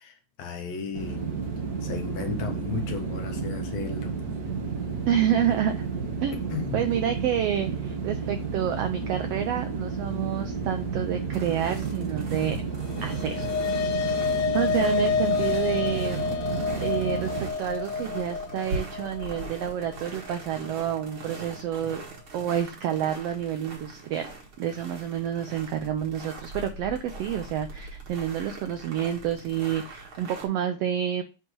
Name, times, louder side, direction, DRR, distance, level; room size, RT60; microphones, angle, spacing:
voice 1, 0.0-1.3 1.8-4.1 6.5-6.9, left 5 dB, 70° left, 5 dB, 1.9 m, -34 dB
sound 1, 0.9-17.5, right 5 dB, 65° right, 0.9 m, -32 dB
voice 2, 5.1-5.9 6.2-12.6 13.0-13.5 14.5-16.2 16.8-22.0 22.3-24.3 24.6-31.2, right 10 dB, 80° right, 7 dB, 1.4 m, -29 dB
sound 2, 11.3-30.5, right 2 dB, 50° right, 2.2 m, -41 dB
sound 3, 12.8-21.4, left 6 dB, 85° left, 2.5 m, -29 dB
8.0 x 3.1 x 6.0 m, 0.32 s
omnidirectional pair, 3.5 m